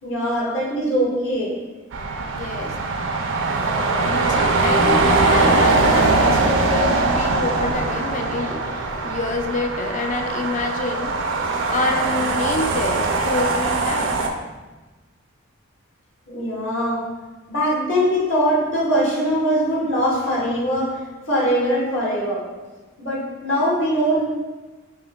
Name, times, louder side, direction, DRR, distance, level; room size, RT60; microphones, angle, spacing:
voice 1, 0.0-1.5 16.3-17.0 17.5-21.0 21.3-22.4 23.0-24.2, equal, 65° left, -7 dB, 1.3 m, -21 dB
sound 1, 1.9-14.3, right 3 dB, 60° right, 0.4 m, -21 dB
voice 2, 2.4-2.7 4.0-11.2 11.7-14.3, left 3 dB, 35° left, 3 dB, 0.3 m, -27 dB
5.5 x 2.6 x 2.2 m, 1.2 s
head